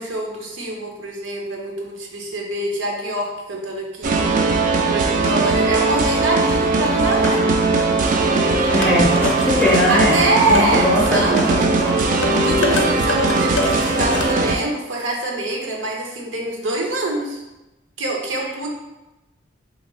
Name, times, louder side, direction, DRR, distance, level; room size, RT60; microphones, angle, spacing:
voice 1, 0.0-4.4 4.8-7.4 9.9-11.6 12.4-17.4 18.0-18.7, right 2 dB, 80° right, 0 dB, 0.7 m, -24 dB
sound 1, 4.0-14.6, right 3 dB, 45° right, 0.3 m, -19 dB
sound 2, 7.1-14.3, left 3 dB, 75° left, 0.5 m, -29 dB
voice 2, 8.7-9.1 9.5-10.2 10.5-11.5, left 1 dB, 5° left, -4 dB, 0.5 m, -19 dB
2.9 x 2.2 x 3.8 m, 1.0 s
head